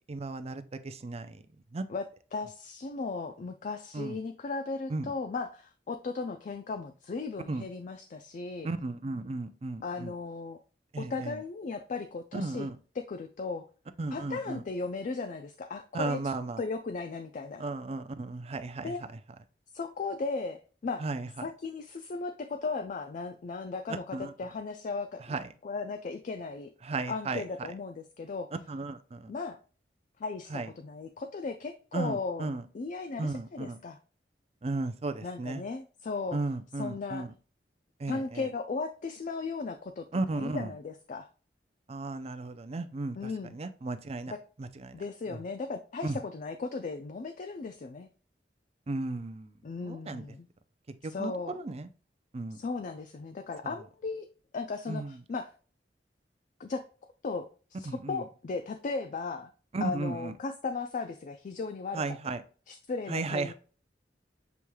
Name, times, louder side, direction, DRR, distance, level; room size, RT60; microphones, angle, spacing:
voice 1, 0.1-1.4 1.7-1.8 3.9-4.2 4.9-5.1 7.5-7.6 8.6-10.1 10.9-11.4 12.3-12.8 14.0-14.6 15.9-16.6 17.6-18.9 21.0-21.3 23.9-24.3 25.3-25.4 26.8-27.7 28.7-29.3 30.5-30.7 31.9-32.6 33.2-33.8 34.6-35.6 36.3-37.3 38.0-38.5 40.1-40.7 41.9-44.3 44.6-45.0 45.3-45.4 46.0-46.2 48.9-49.5 49.8-50.2 51.0-51.9 52.3-52.6 54.9-55.2 57.9-58.2 59.7-60.3 61.9-62.4 63.1-63.5, right 3 dB, 35° right, 10 dB, 0.5 m, -35 dB
voice 2, 2.3-8.7 9.8-10.6 11.0-12.7 13.0-13.6 14.1-17.6 18.8-19.0 19.7-21.0 21.4-25.4 25.6-26.7 27.1-28.5 29.3-29.6 30.2-32.5 32.7-34.0 35.2-36.4 36.8-37.3 38.1-40.1 40.4-41.3 43.2-43.6 44.3-44.4 44.9-48.1 49.6-50.5 51.0-51.5 52.5-54.3 54.5-55.5 56.6-56.8 57.2-59.5 59.8-62.2 62.7-63.5, left 4 dB, 45° left, 8 dB, 0.4 m, -36 dB
6.9 x 3.1 x 2.2 m, 0.39 s
head